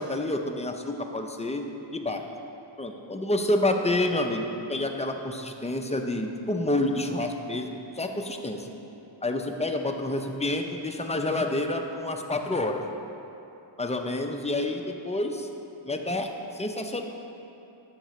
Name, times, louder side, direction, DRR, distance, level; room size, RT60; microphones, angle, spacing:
voice 1, 0.0-1.7 1.9-2.2 2.8-8.7 9.2-12.8 13.8-15.5 15.8-17.0, left 1 dB, 15° left, 4 dB, 0.4 m, -28 dB
9.0 x 6.5 x 3.0 m, 2.9 s
wide cardioid pair, 80°, 47 cm